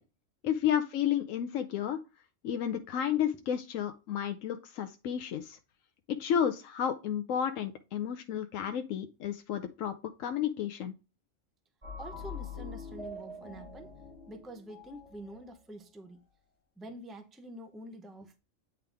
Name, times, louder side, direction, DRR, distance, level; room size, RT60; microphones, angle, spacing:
voice 1, 0.4-2.0 2.4-5.6 6.1-9.9 10.2-10.9, left 9 dB, 85° left, 1.0 m, -32 dB
sound 1, 11.8-15.4, left 4 dB, 25° right, 2.9 m, -44 dB
voice 2, 12.0-13.9 14.3-16.2 16.8-18.4, right 1 dB, ahead, 0.6 m, -47 dB
9.1 x 3.6 x 3.4 m
omnidirectional pair, 1.3 m